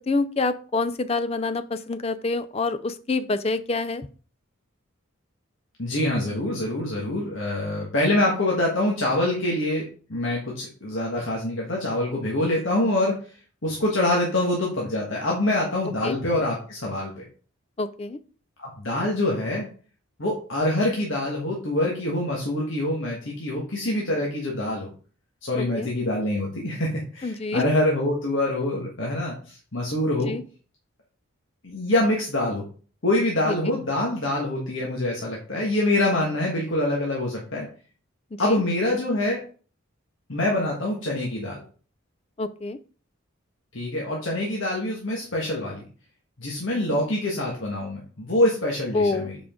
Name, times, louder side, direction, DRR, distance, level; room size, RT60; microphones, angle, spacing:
voice 1, 0.1-4.1 16.0-16.2 17.8-18.2 25.8-25.9 27.2-27.6 30.3-30.4 33.5-33.6 38.4-38.6 42.4-42.8 46.9-47.0 48.9-49.3, left 3 dB, 30° left, 13 dB, 0.4 m, -26 dB
voice 2, 5.8-13.1 13.6-17.2 18.6-19.7 20.2-24.9 25.4-30.3 31.6-32.6 33.0-37.7 38.4-39.4 40.3-41.6 43.7-45.8 46.4-49.4, left 1 dB, 65° left, -2 dB, 1.5 m, -25 dB
7.1 x 5.0 x 3.7 m, 0.40 s
head